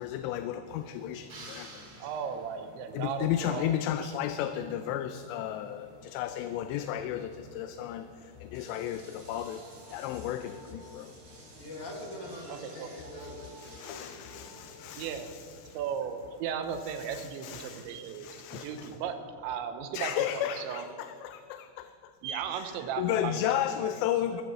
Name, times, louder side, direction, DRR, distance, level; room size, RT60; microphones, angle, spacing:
voice 1, 0.0-1.9 2.9-9.6 9.9-11.1 13.6-15.3 15.7-15.8 17.1-18.9 19.9-22.1 23.0-24.4, left 11 dB, 85° left, 9 dB, 2.7 m, -34 dB
sound 1, 0.6-16.5, left 1 dB, 35° left, 5.2 m, -57 dB
sound 2, 1.3-2.8, right 3 dB, 40° right, 2.4 m, -49 dB
voice 2, 2.0-4.1 8.6-8.9 10.1-10.3 12.3-12.9 15.0-15.3 15.7-20.9 22.2-24.0, right 7 dB, 90° right, 7 dB, 3.2 m, -37 dB
sound 3, 8.5-15.5, right 1 dB, 65° right, 6.3 m, -53 dB
voice 3, 11.6-14.6, left 1 dB, 60° left, -1 dB, 3.7 m, -44 dB
22.0 x 14.5 x 3.2 m, 2.5 s
omnidirectional pair, 5.1 m